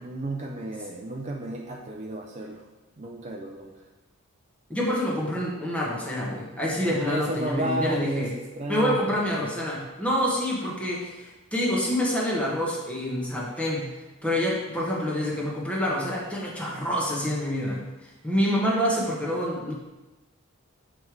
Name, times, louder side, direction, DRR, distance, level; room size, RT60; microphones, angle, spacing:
voice 1, 0.0-2.6 3.0-3.8 6.8-9.5, right 1 dB, 35° right, 0 dB, 0.4 m, -33 dB
voice 2, 4.7-8.3 8.7-13.8 14.2-19.7, equal, 5° left, -5 dB, 1.2 m, -27 dB
7.5 x 3.3 x 4.7 m, 1.1 s
head